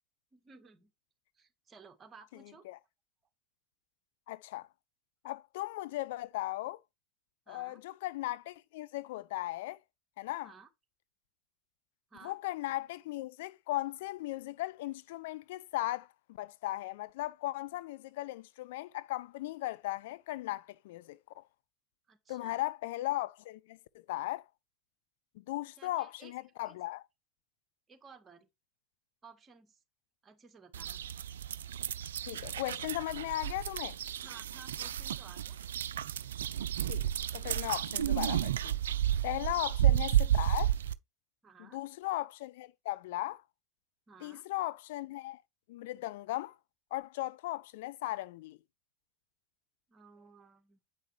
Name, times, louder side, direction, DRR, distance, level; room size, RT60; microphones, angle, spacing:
voice 1, 0.3-0.9 1.3-2.7 7.5-7.8 10.4-10.7 12.1-12.4 22.1-22.6 25.8-26.3 26.7-26.8 27.9-28.5 29.2-29.8 30.2-31.0 34.2-35.6 39.4-39.6 41.4-41.8 44.1-44.5 49.9-50.8, right 5 dB, 25° right, 1.8 m, -56 dB
voice 2, 4.3-4.7 5.2-6.8 7.5-9.8 10.2-10.5 12.2-21.4 22.3-24.4 25.4-27.0 32.3-34.0 36.8-38.8 39.2-40.7 41.6-43.4 44.2-45.4 45.7-46.5 46.9-48.6, left 17 dB, 65° left, 0.3 m, -37 dB
sound 1, 30.7-40.9, right 11 dB, 75° right, 0.3 m, -32 dB
8.3 x 5.5 x 3.1 m
figure-of-eight pair, 75°, 0 cm